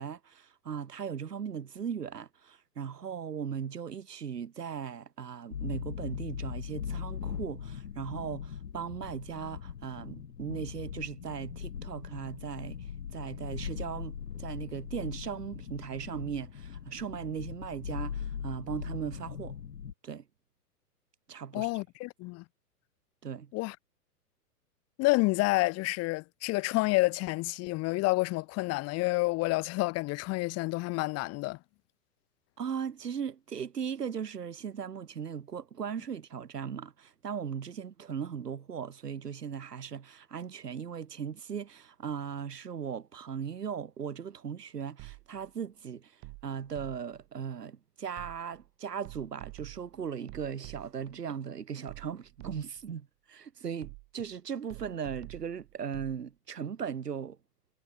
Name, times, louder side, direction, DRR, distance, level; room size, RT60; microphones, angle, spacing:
voice 1, 0.0-19.5 20.0-20.2 21.3-21.7 23.2-23.5 32.6-46.1 46.4-57.4, right 7 dB, 80° right, 2.1 m, -38 dB
sound 1, 5.5-19.9, left 8 dB, 75° left, 2.2 m, -40 dB
voice 2, 21.5-22.4 23.5-23.8 25.0-31.6, left 22 dB, 30° left, 2.1 m, -29 dB
sound 2, 45.0-45.5 46.2-47.3 48.2-48.7 49.1-51.2 51.9-52.9 53.8-54.3 54.7-56.2, right 29 dB, 35° right, 5.3 m, -48 dB
hypercardioid pair, 115°, 47 cm